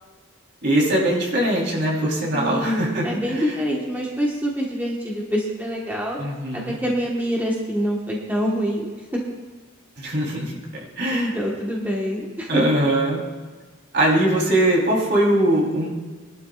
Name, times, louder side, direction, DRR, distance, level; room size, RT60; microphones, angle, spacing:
voice 1, 0.6-3.5 6.2-6.8 10.0-10.6 11.0-11.3 12.5-13.2 13.9-15.9, right 1 dB, 55° right, -3 dB, 3.6 m, -21 dB
voice 2, 2.3-6.2 6.5-9.2 11.1-12.7, equal, 10° right, -3 dB, 1.3 m, -25 dB
22.0 x 12.0 x 2.4 m, 1.4 s
head